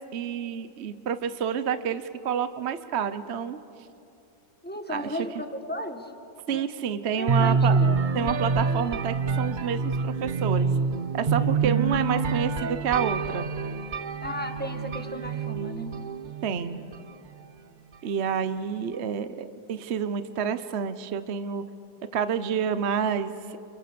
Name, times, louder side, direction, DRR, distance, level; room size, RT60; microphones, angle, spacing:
voice 1, 0.1-3.6 4.9-5.1 6.5-7.8 8.1-10.7 11.1-13.5 16.4-16.8 18.0-21.6 22.1-23.6, right 7 dB, 50° right, 12 dB, 0.9 m, -29 dB
voice 2, 4.6-6.1 6.5-8.0 14.2-16.0, equal, 5° left, 6 dB, 1.4 m, -35 dB
sound 1, 7.3-17.1, right 5 dB, 85° right, 0.4 m, -26 dB
29.0 x 28.5 x 6.9 m, 2.7 s
omnidirectional pair, 1.9 m